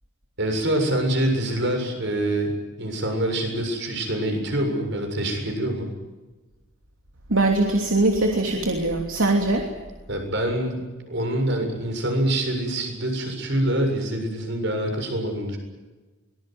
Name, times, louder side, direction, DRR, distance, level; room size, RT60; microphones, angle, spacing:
voice 1, 0.4-2.5 2.8-5.9 10.1-15.6, right 1 dB, 55° right, 4 dB, 7.3 m, -25 dB
voice 2, 7.3-9.7, right 2 dB, 75° right, 2 dB, 3.0 m, -21 dB
24.0 x 20.5 x 9.5 m, 1.2 s
head